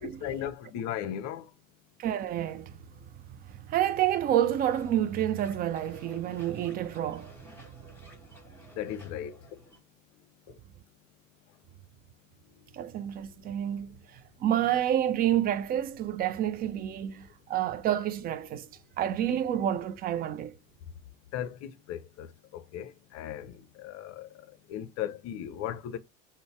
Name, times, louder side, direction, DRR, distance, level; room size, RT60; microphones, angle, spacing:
voice 1, 0.0-1.4 8.8-9.3 21.3-22.3 22.5-23.5 23.8-24.3 24.7-26.0, left 10 dB, 45° left, 0.6 m, -36 dB
voice 2, 2.0-2.8 3.3-7.3 12.7-14.0 14.4-18.7 19.0-20.6, right 11 dB, 25° right, 0.4 m, -29 dB
sound 1, 4.6-9.8, equal, 5° left, 1.5 m, -54 dB
3.8 x 2.1 x 4.4 m
figure-of-eight pair, 70°, 39 cm